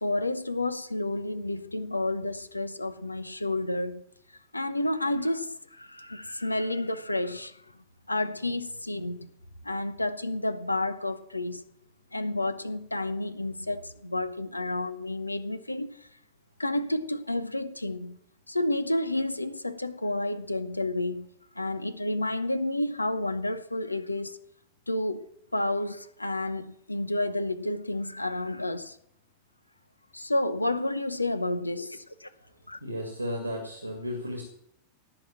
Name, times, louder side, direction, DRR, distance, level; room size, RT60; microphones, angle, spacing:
voice 1, 0.0-4.0 4.5-7.6 8.1-9.3 9.6-11.6 12.1-16.0 16.6-18.2 18.5-21.3 21.6-24.4 24.9-29.0 30.1-32.3 32.7-32.8, left 2 dB, 85° left, 0.8 m, -30 dB
voice 2, 32.8-34.4, equal, 90° right, 2.3 m, -34 dB
17.5 x 6.1 x 8.7 m
figure-of-eight pair, 90°, 0 cm